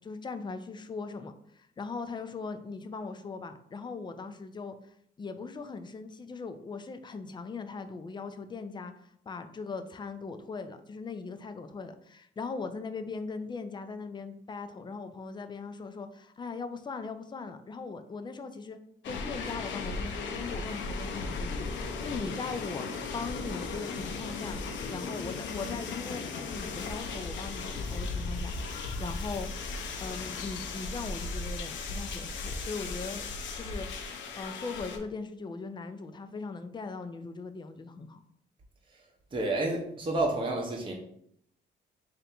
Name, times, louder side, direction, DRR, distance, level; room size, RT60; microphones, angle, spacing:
voice 1, 0.0-18.8 19.1-22.9 23.1-24.6 24.9-28.5 29.0-29.5 30.0-33.2 33.6-33.9 34.3-38.2, left 4 dB, 25° left, 9 dB, 0.4 m, -39 dB
sound 1, 19.0-35.0, left 4 dB, 70° left, 0.6 m, -36 dB
voice 2, 39.3-40.9, right 2 dB, 25° right, -1 dB, 0.7 m, -29 dB
3.3 x 2.6 x 4.2 m, 0.72 s
cardioid pair, 90°, 20 cm